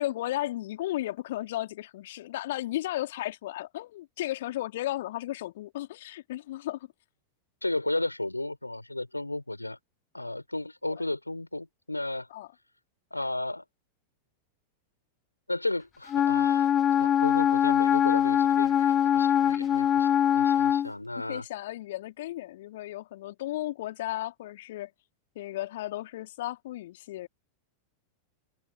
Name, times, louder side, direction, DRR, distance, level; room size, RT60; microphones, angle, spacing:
voice 1, 0.0-6.9 12.3-12.5 21.1-24.9 25.3-27.3, left 15 dB, 55° left, 3.3 m, -34 dB
voice 2, 7.6-9.8 10.1-12.3 13.1-13.6 15.5-21.4, left 2 dB, 85° left, 4.1 m, -33 dB
Wind instrument woodwind instrument, 16.1-20.9, left 10 dB, 25° left, 0.7 m, -23 dB
figure-of-eight pair, 90°, 0 cm